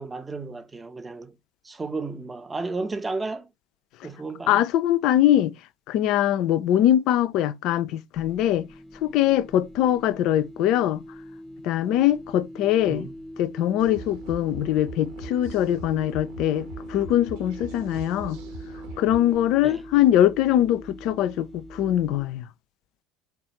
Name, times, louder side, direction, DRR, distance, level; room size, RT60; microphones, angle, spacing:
voice 1, 0.0-1.4 1.6-3.5 4.0-4.6 12.9-13.2 19.6-19.8, right 3 dB, 20° right, 0.5 m, -33 dB
voice 2, 4.5-5.5 5.9-8.7 9.0-11.0 11.6-13.1 13.4-18.4 19.0-22.5, left 12 dB, 55° left, 0.3 m, -22 dB
sound 1, 8.1-22.3, left 1 dB, 15° left, 0.8 m, -42 dB
sound 2, 13.8-19.4, right 3 dB, 65° right, 0.8 m, -41 dB
3.2 x 2.3 x 2.9 m
figure-of-eight pair, 65°, 0 cm